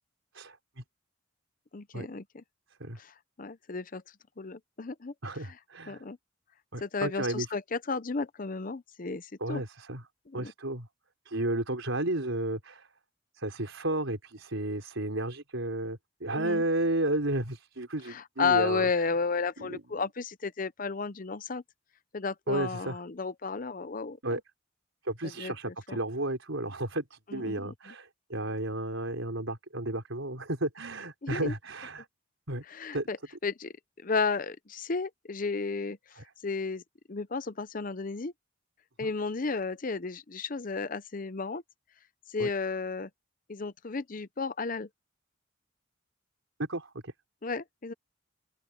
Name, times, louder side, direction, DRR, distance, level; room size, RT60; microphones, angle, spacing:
voice 1, 0.3-0.8 1.9-2.1 2.8-3.0 5.2-6.0 6.7-7.5 9.4-10.1 10.3-10.9 11.2-12.9 13.3-18.9 19.6-19.8 22.5-23.0 24.2-24.4 25.0-32.1 32.5-32.6 32.9-33.1 36.2-36.3 39.0-39.1 42.4-42.5 46.6-47.1, right 1 dB, 75° right, 4.2 m, -33 dB
voice 2, 1.7-2.4 3.0-4.0 4.4-5.1 5.9-6.2 6.8-9.6 10.3-10.5 16.4-16.6 18.1-21.6 22.1-24.4 25.4-26.0 27.3-27.9 31.2-31.5 32.7-33.2 33.4-33.7 34.0-36.0 36.4-36.8 37.1-38.3 39.0-41.6 42.3-43.1 43.5-44.9 47.4-47.9, left 4 dB, 40° left, 0.7 m, -33 dB
open air
head